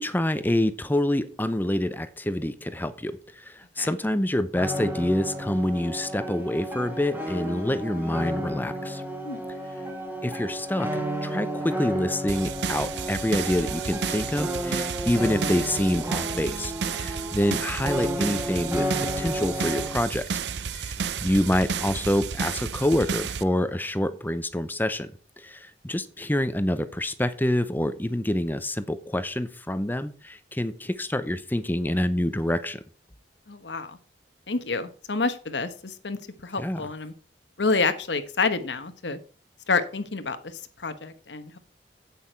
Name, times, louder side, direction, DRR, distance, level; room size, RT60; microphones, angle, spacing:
voice 1, 0.0-9.0 10.2-20.3 20.7-25.1 25.4-32.8 36.6-36.9, left 1 dB, 10° left, 13 dB, 0.6 m, -27 dB
sound 1, 4.6-20.0, equal, 10° right, 1.9 m, -32 dB
sound 2, 12.3-23.4, right 6 dB, 75° right, 0.6 m, -32 dB
voice 2, 33.5-34.0 34.5-37.1 37.6-39.2 39.7-40.5 40.8-41.6, left 4 dB, 85° left, 10 dB, 1.2 m, -28 dB
9.4 x 8.6 x 4.5 m, 0.38 s
head